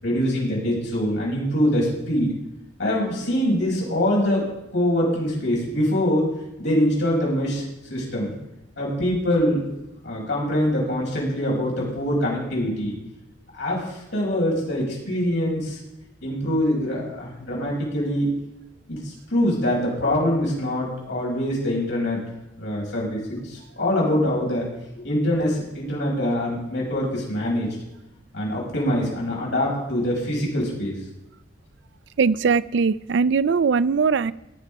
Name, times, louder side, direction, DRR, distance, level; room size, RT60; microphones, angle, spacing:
voice 1, 0.0-2.3 2.8-4.5 4.7-6.3 6.6-7.6 7.9-8.3 8.8-9.6 10.0-13.0 13.5-15.8 16.2-18.3 18.9-22.2 22.6-24.7 24.9-27.8 28.3-31.0, equal, 65° left, -3 dB, 6.3 m, -24 dB
voice 2, 32.2-34.3, right 5 dB, 65° right, 17 dB, 0.4 m, -20 dB
17.5 x 9.3 x 5.4 m, 0.91 s
head